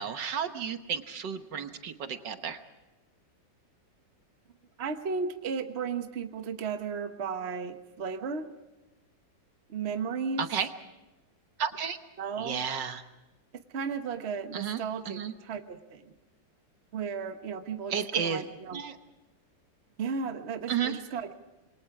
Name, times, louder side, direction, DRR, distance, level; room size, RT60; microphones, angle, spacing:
voice 1, 0.0-2.6 10.4-10.7 11.6-12.0 12.4-13.0 14.5-15.3 17.9-18.4 18.7-19.0 20.7-21.0, right 7 dB, 65° right, 8 dB, 1.8 m, -32 dB
voice 2, 4.8-8.5 9.7-10.4 12.2-12.6 13.7-16.0 16.9-18.8 20.0-21.3, right 5 dB, 40° right, 7 dB, 1.2 m, -34 dB
27.5 x 22.5 x 4.8 m, 1.1 s
omnidirectional pair, 2.1 m